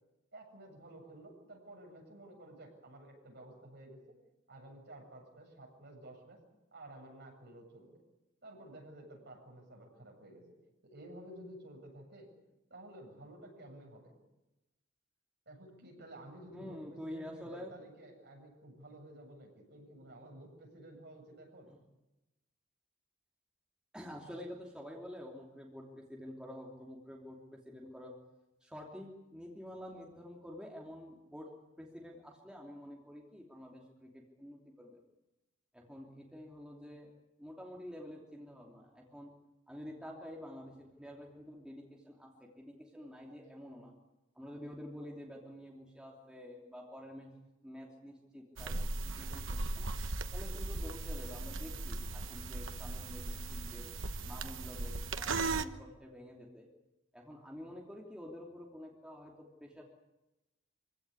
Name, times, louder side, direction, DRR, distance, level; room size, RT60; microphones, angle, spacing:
voice 1, 0.3-4.2 4.5-6.4 6.7-8.0 8.4-10.6 10.8-12.3 12.7-14.1 15.5-21.7, right 1 dB, 55° right, 1 dB, 7.8 m, -52 dB
voice 2, 16.5-17.8 23.9-28.1 28.6-31.5 31.8-35.0 35.7-37.1 37.4-39.3 39.7-43.9 44.3-47.3 47.6-48.8 49.2-49.9 50.3-53.9 54.2-56.7 57.1-59.8, equal, 5° right, -2 dB, 2.9 m, -48 dB
sound 1, 48.6-55.6, right 3 dB, 70° right, 1.2 m, -38 dB
25.5 x 16.5 x 9.9 m, 0.99 s
head